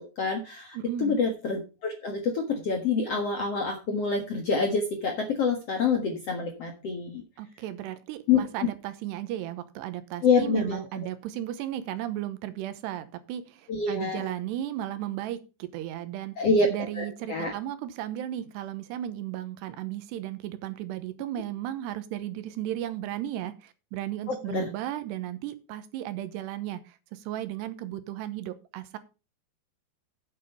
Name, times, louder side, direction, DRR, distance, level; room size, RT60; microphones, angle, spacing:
voice 1, 0.0-7.2 8.3-8.4 10.2-10.8 13.7-14.3 16.4-16.7 17.0-17.5 24.3-24.7, left 4 dB, 55° left, 3 dB, 1.7 m, -27 dB
voice 2, 0.7-1.2 7.4-16.4 16.7-29.0, right 12 dB, 85° right, 11 dB, 3.1 m, -35 dB
8.7 x 7.7 x 5.5 m, 0.31 s
omnidirectional pair, 4.8 m